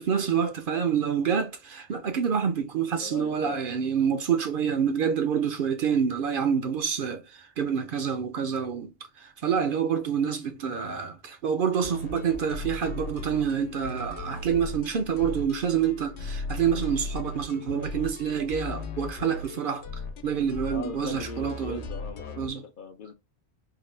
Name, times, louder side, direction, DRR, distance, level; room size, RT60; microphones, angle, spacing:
voice 1, 0.0-19.8 20.2-21.8 22.4-22.6, right 7 dB, 60° right, 0.7 m, -27 dB
voice 2, 2.9-3.7 20.7-23.1, left 6 dB, 60° left, 0.6 m, -40 dB
sound 1, 11.8-22.5, left 3 dB, 80° left, 1.0 m, -37 dB
3.6 x 2.2 x 3.2 m
omnidirectional pair, 1.1 m